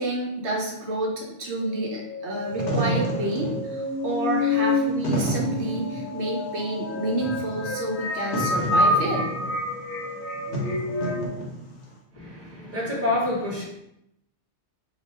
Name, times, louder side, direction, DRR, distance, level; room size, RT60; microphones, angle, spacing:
voice 1, 0.0-9.4, right 2 dB, 75° right, -1 dB, 1.0 m, -29 dB
sound 1, 1.6-11.3, left 2 dB, 55° left, 0.6 m, -28 dB
Wind / Fire, 2.3-11.9, right 1 dB, 70° left, 1.1 m, -31 dB
voice 2, 12.1-13.6, left 2 dB, 15° right, -5 dB, 1.0 m, -27 dB
2.9 x 2.3 x 4.2 m, 0.81 s
omnidirectional pair, 1.2 m